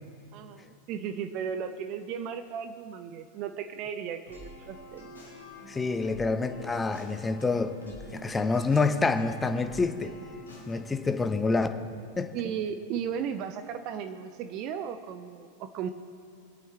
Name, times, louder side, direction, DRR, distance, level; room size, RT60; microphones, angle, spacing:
voice 1, 0.3-5.1 12.3-15.9, right 7 dB, 40° right, 9 dB, 0.6 m, -35 dB
sound 1, 4.3-10.8, left 1 dB, 75° left, 2.5 m, -47 dB
voice 2, 5.7-10.1 10.7-11.7 12.2-12.3, left 3 dB, 15° left, 9 dB, 0.7 m, -27 dB
24.5 x 8.6 x 3.3 m, 2.4 s
figure-of-eight pair, 90°, 0 cm